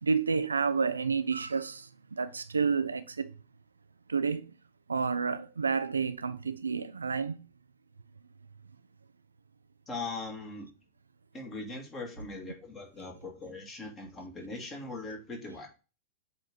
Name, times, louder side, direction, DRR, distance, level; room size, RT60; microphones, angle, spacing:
voice 1, 0.0-3.3 4.1-4.5 4.9-7.4, right 5 dB, 75° right, 0.4 m, -30 dB
voice 2, 9.9-10.7 11.3-15.7, left 3 dB, 25° left, 2.2 m, -40 dB
7.9 x 3.3 x 4.0 m
figure-of-eight pair, 90°, 0 cm